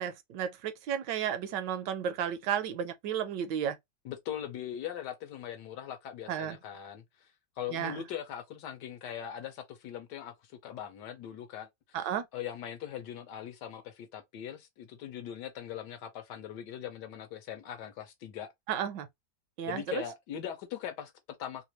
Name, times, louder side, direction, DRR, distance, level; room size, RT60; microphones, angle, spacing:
voice 1, 0.0-3.8 6.3-6.6 7.7-8.0 11.9-12.3 18.7-19.1 19.6-20.0, right 9 dB, 75° right, 1.1 m, -33 dB
voice 2, 4.0-7.3 7.6-18.5 19.7-21.6, left 10 dB, 70° left, 1.2 m, -41 dB
3.3 x 2.5 x 2.8 m
omnidirectional pair, 2.0 m